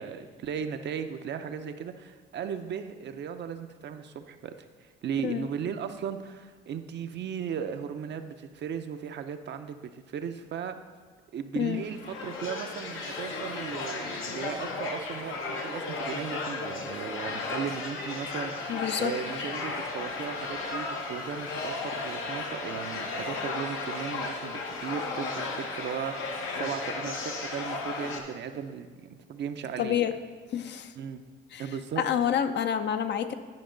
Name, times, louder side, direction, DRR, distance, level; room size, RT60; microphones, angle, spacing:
voice 1, 0.0-4.5 4.8-10.8 11.3-30.1 31.0-31.2 31.6-32.0, right 7 dB, 60° right, 8 dB, 0.6 m, -36 dB
sound 1, 11.7-28.2, left 3 dB, 80° left, 1.0 m, -35 dB
voice 2, 18.7-19.1 29.8-30.1 30.5-30.9 31.5-31.7 32.0-33.3, left 9 dB, 60° left, 9 dB, 0.6 m, -28 dB
10.5 x 5.3 x 3.8 m, 1.5 s
cardioid pair, 90°, 20 cm